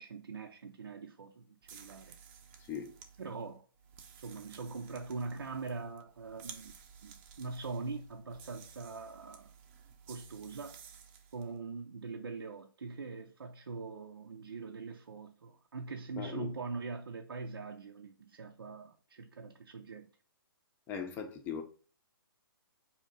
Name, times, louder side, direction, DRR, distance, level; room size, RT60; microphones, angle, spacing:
voice 1, 0.0-2.2 3.2-3.7 4.2-6.7 7.0-9.5 10.1-10.8 11.3-20.1, right 4 dB, 80° right, 0.5 m, -42 dB
sound 1, 1.6-11.5, right 7 dB, 30° right, 0.6 m, -54 dB
voice 2, 16.2-16.5 20.9-21.6, left 7 dB, 15° left, 0.6 m, -39 dB
4.2 x 2.8 x 3.7 m
hypercardioid pair, 140°, 12 cm